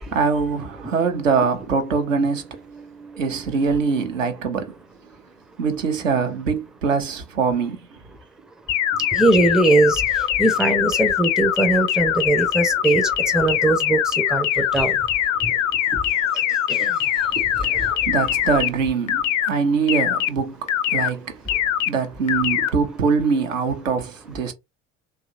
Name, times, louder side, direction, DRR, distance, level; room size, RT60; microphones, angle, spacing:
voice 1, 0.1-4.8 5.6-7.8 17.7-21.4 21.9-24.5, right 5 dB, 80° right, 0.6 m, -23 dB
sound 1, 8.7-18.7 19.1-19.5 19.9-20.3 20.7-21.1 21.5-21.9 22.3-22.7, left 11 dB, 70° left, 0.5 m, -22 dB
voice 2, 9.1-10.0 10.4-13.0 13.3-14.0 14.3-14.5 14.7-15.0 16.8-16.9, right 2 dB, ahead, 0.4 m, -19 dB
2.8 x 2.4 x 2.6 m
figure-of-eight pair, 55°, 38 cm